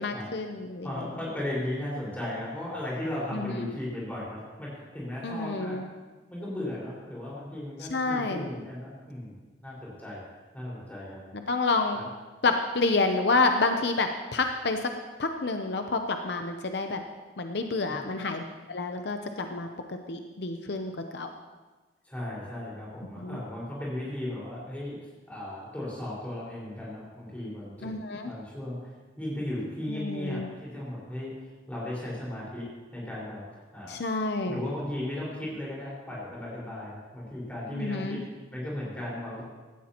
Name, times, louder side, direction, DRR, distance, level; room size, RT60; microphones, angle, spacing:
voice 1, 0.0-0.9 3.3-3.7 5.2-5.8 7.8-8.5 11.5-12.0 12.4-14.8 15.2-17.0 17.4-21.3 23.2-23.4 27.8-28.3 29.9-30.5 33.9-34.6 37.7-38.2, left 3 dB, 65° left, 5 dB, 0.7 m, -29 dB
voice 2, 0.8-5.8 6.3-10.2 10.5-11.4 11.9-12.1 17.9-18.0 22.0-25.0 25.3-27.9 28.2-28.8 29.2-31.3 31.7-34.0 34.4-38.2 38.5-39.4, left 1 dB, 10° left, -7 dB, 4.9 m, -36 dB
17.0 x 12.5 x 3.0 m, 1.3 s
head